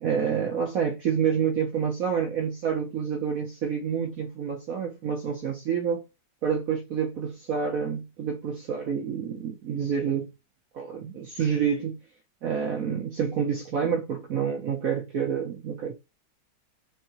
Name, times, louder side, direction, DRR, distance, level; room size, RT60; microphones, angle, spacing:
voice 1, 0.0-6.0 6.4-10.3 10.7-12.0 12.4-15.9, right 7 dB, 65° right, 0.8 m, -28 dB
4.5 x 2.5 x 2.9 m
omnidirectional pair, 2.2 m